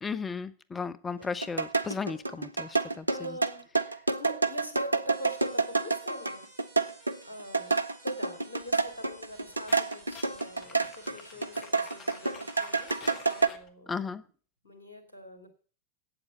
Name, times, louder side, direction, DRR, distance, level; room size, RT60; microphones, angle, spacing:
voice 1, 0.0-3.4 13.9-14.2, left 5 dB, 15° left, 0.6 m, -35 dB
sound 1, 1.2-11.2 11.4-13.5, right 4 dB, 80° right, 0.5 m, -28 dB
voice 2, 2.8-3.6 4.2-6.5 7.2-7.7 8.0-14.0 14.6-15.5, equal, 75° left, 2.8 m, -43 dB
sound 2, 5.1-13.4, right 2 dB, 55° right, 3.8 m, -55 dB
sound 3, 8.6-13.7, left 5 dB, 35° left, 1.4 m, -49 dB
8.5 x 7.9 x 9.0 m
figure-of-eight pair, 90°, 0 cm